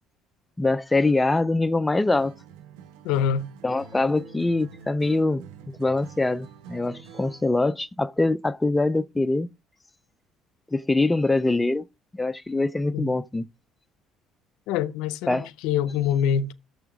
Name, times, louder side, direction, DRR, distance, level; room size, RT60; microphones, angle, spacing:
voice 1, 0.6-2.3 3.6-9.5 10.7-11.9 12.1-13.5 15.3-15.5, left 2 dB, 15° left, 0.4 m, -24 dB
Acoustic guitar, 2.1-7.5, right 6 dB, 85° right, 0.9 m, -46 dB
voice 2, 3.0-3.5 12.9-13.1 14.7-16.5, left 8 dB, 80° left, 0.6 m, -25 dB
7.0 x 6.1 x 6.1 m
supercardioid pair, 90°, 0 cm